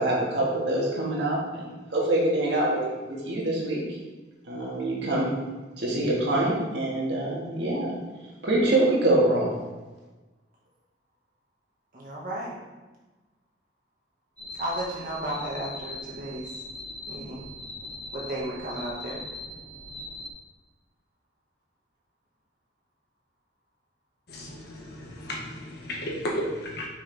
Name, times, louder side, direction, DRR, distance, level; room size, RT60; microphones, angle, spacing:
voice 1, 0.0-3.8 4.5-5.4 5.8-8.0 8.4-9.5, right 1 dB, 65° right, -3 dB, 1.9 m, -25 dB
voice 2, 11.9-12.5 14.6-16.4 17.1-17.4 18.1-19.2, right 1 dB, 50° right, -5 dB, 1.9 m, -33 dB
sound 1, 14.4-20.3, left 1 dB, 10° left, 1.4 m, -40 dB
voice 3, 24.3-26.9, equal, 60° left, -2 dB, 1.6 m, -34 dB
6.5 x 5.8 x 3.5 m, 1.2 s
head